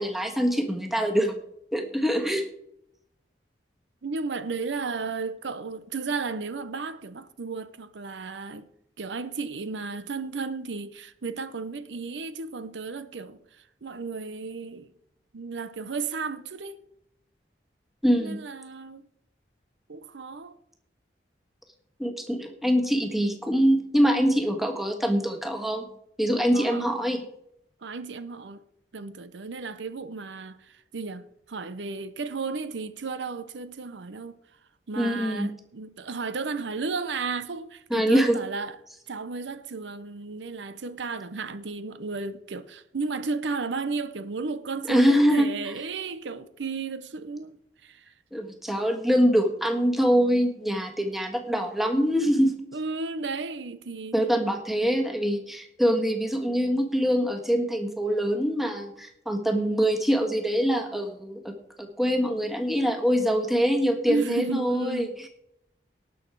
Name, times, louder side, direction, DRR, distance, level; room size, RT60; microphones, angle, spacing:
voice 1, 0.0-1.4 1.7-2.4 18.0-18.4 22.0-25.8 26.2-27.2 34.9-35.5 37.9-38.4 44.9-45.5 48.3-52.5 54.1-61.5 61.8-65.1, equal, ahead, 1.5 m, -24 dB
voice 2, 4.0-8.6 9.0-14.9 15.3-16.8 18.2-19.0 19.9-20.6 26.5-26.9 27.8-28.6 28.9-34.4 34.9-38.8 39.1-48.1 52.7-54.1 64.1-65.3, right 4 dB, 85° right, 0.7 m, -34 dB
18.5 x 6.3 x 4.6 m
head